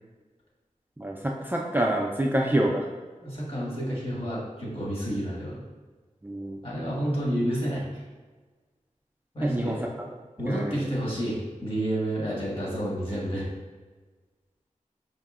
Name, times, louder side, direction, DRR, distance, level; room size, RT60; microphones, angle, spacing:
voice 1, 1.0-2.9 6.2-6.6 9.4-9.8 10.5-10.8, right 1 dB, 15° right, -2 dB, 0.3 m, -27 dB
voice 2, 3.2-5.6 6.6-8.0 9.3-9.8 10.4-13.5, right 1 dB, 45° left, -6 dB, 1.3 m, -30 dB
4.8 x 2.6 x 2.4 m, 1.3 s
wide cardioid pair, 70°, 13 cm